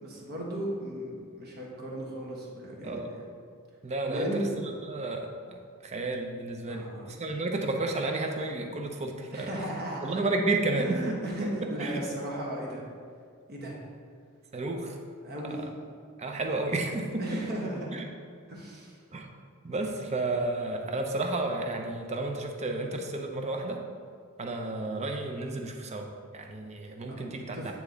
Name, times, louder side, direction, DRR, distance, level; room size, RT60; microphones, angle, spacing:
voice 1, 0.0-3.2 4.1-4.4 6.7-7.3 9.3-10.2 10.8-12.8 13.5-13.8 15.2-15.7 17.2-18.0 18.5-19.0 27.1-27.2 27.5-27.7, right 1 dB, 45° right, -3 dB, 1.3 m, -36 dB
voice 2, 3.8-9.6 10.0-11.1 11.4-11.5 11.8-12.0 14.5-15.0 16.2-17.4 17.9-18.1 19.1-19.3 19.6-23.8 24.4-27.7, right 2 dB, 30° right, 3 dB, 0.6 m, -32 dB
8.9 x 3.5 x 3.9 m, 2.1 s
head